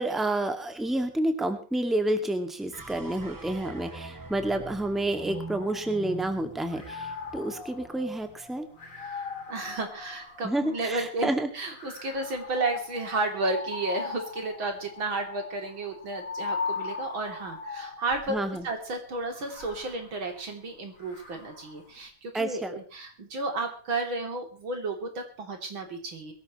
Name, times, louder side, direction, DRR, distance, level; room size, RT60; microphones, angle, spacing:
voice 1, 0.0-8.7 10.4-11.5 18.3-18.7 22.3-22.7, right 1 dB, ahead, 6 dB, 2.0 m, -29 dB
sound 1, 2.7-9.1, right 3 dB, 25° right, 0.4 m, -44 dB
sound 2, 5.1-6.3 6.7-11.1 11.7-18.4 19.2-21.8, left 5 dB, 40° left, 3.3 m, -39 dB
voice 2, 9.1-18.4 18.6-26.3, right 2 dB, 90° right, 4 dB, 4.0 m, -32 dB
22.0 x 14.0 x 3.1 m, 0.37 s
omnidirectional pair, 2.1 m